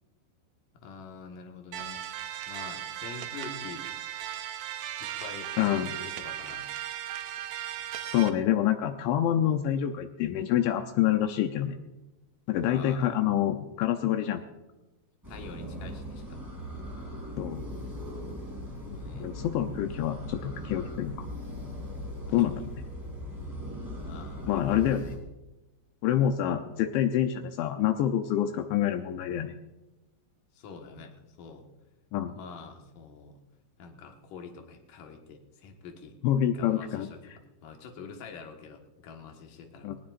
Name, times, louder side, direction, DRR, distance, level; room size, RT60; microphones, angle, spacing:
voice 1, 0.7-2.0 2.5-3.8 5.0-5.5 6.0-6.7 12.7-13.1 15.3-16.5 18.6-19.3 22.3-22.4 24.0-24.8 30.5-31.7 32.4-33.4 33.8-36.2 36.5-37.3 37.6-39.9, left 5 dB, 60° left, 3 dB, 2.4 m, -46 dB
sound 1, 1.7-8.3, right 11 dB, 80° right, 2.2 m, -37 dB
voice 2, 5.6-5.9 8.1-11.8 12.5-14.4 17.4-17.6 18.9-21.3 22.3-22.6 24.5-25.1 26.0-29.5 32.1-32.4 36.2-37.1 39.8-39.9, left 11 dB, 80° left, 7 dB, 2.8 m, -27 dB
sound 2, 15.2-25.1, equal, 5° right, 2.7 m, -39 dB
19.5 x 19.5 x 2.5 m, 1.0 s
omnidirectional pair, 5.6 m